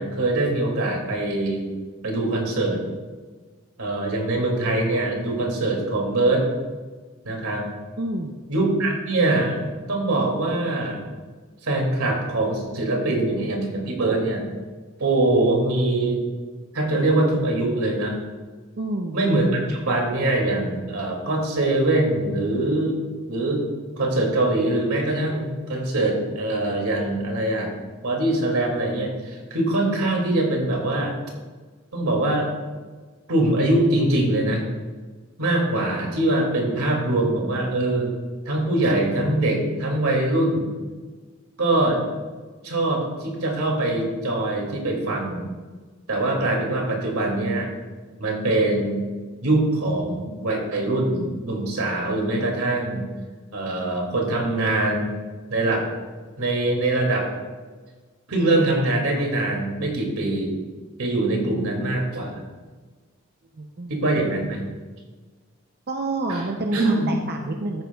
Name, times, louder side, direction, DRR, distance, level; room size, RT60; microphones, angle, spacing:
voice 1, 0.0-1.7 2.0-2.9 3.8-6.5 7.2-7.6 8.5-11.0 11.6-14.5 15.0-16.2 16.7-18.2 19.1-23.0 23.3-23.6 24.0-27.7 28.0-31.1 31.9-32.5 33.3-34.6 35.4-38.1 38.4-40.7 41.6-42.0 42.6-45.5 46.1-47.7 48.2-49.1 49.4-53.0 53.5-55.1 55.5-55.9 56.4-57.3 58.3-60.5 61.0-62.4 63.9-64.7 66.3-66.4 66.7-67.1, right 2 dB, 90° right, 0 dB, 2.4 m, -23 dB
voice 2, 8.0-8.4 18.8-19.2 63.6-64.0 65.9-67.8, right 2 dB, 45° right, 3 dB, 0.6 m, -28 dB
13.5 x 9.2 x 2.3 m, 1.4 s
head